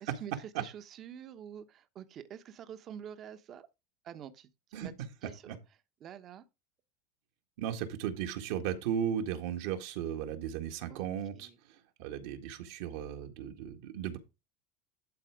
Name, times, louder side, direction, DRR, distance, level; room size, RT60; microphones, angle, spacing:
voice 1, 0.0-3.7 4.0-4.5 4.8-5.6 6.0-6.4 10.9-11.1 11.3-11.5, right 9 dB, 40° right, 1.0 m, -47 dB
voice 2, 7.6-11.5 12.0-14.2, right 9 dB, 70° right, 1.7 m, -36 dB
11.5 x 4.1 x 4.9 m
hypercardioid pair, 105°, 0 cm